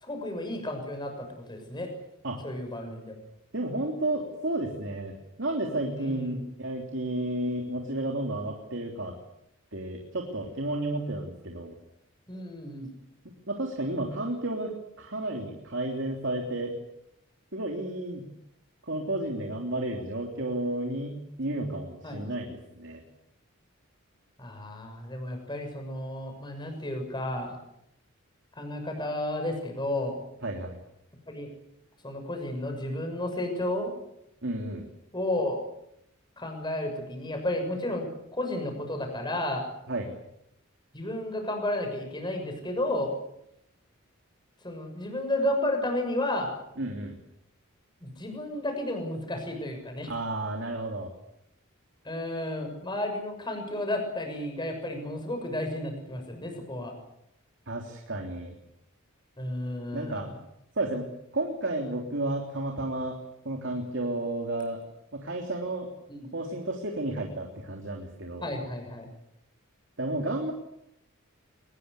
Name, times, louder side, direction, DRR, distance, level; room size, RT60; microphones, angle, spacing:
voice 1, 0.0-1.9 2.4-3.1 6.0-6.5 12.3-12.9 22.0-22.2 24.4-27.5 28.6-30.2 31.3-31.5 32.0-33.9 35.1-35.6 36.4-39.7 40.9-43.1 44.6-46.5 48.0-50.1 52.0-56.9 59.4-60.4 66.1-66.3 68.4-69.1, left 1 dB, 20° left, 5 dB, 6.7 m, -32 dB
voice 2, 3.5-9.1 9.7-11.7 13.5-16.7 17.5-18.2 18.8-23.0 30.4-30.8 34.4-34.9 39.9-40.1 46.8-47.2 50.1-51.1 57.7-58.5 59.9-60.3 60.7-61.0 61.3-63.2 63.4-64.8 65.1-65.9 66.3-68.5 70.0-70.5, right 1 dB, 60° right, 2 dB, 3.4 m, -32 dB
23.5 x 21.0 x 8.3 m, 0.81 s
head